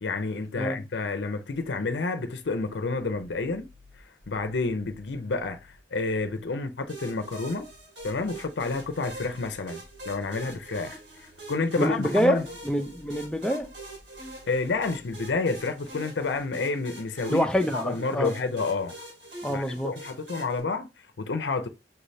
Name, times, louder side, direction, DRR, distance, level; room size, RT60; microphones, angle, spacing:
voice 1, 0.0-3.7 4.3-5.6 5.9-7.7 8.0-12.5 14.5-17.5 17.7-18.9 19.5-20.9 21.2-21.7, left 3 dB, 90° left, 0.6 m, -29 dB
sound 1, 2.8-16.5, left 2 dB, 35° right, 1.0 m, -56 dB
sound 2, 6.9-20.6, right 2 dB, 80° right, 2.3 m, -44 dB
voice 2, 11.8-13.7 17.3-18.3 19.4-20.0, equal, 5° left, 0.5 m, -26 dB
5.8 x 3.2 x 2.7 m
head